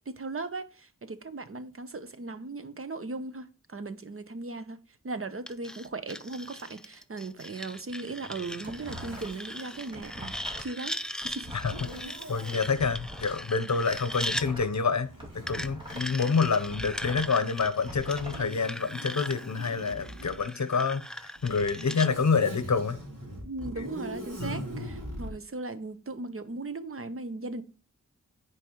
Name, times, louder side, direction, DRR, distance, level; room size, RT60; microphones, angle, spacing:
voice 1, 0.1-4.8 5.0-11.6 23.4-27.6, right 3 dB, 40° right, 0.8 m, -38 dB
sound 1, 5.5-14.5 15.5-22.1, equal, ahead, 0.4 m, -39 dB
sound 2, 8.6-9.5 9.8-13.4 13.8-16.1 16.4-18.4, equal, 15° right, 2.5 m, -43 dB
Zipper (clothing), 8.6-10.0 11.6-12.7 14.1-17.4 18.2-20.4 21.4-25.3, right 1 dB, 70° right, 3.0 m, -43 dB
voice 2, 12.0-15.1 15.3-23.0 24.4-24.8, left 5 dB, 60° left, 0.8 m, -28 dB
10.0 x 4.6 x 3.1 m
wide cardioid pair, 60°, 33 cm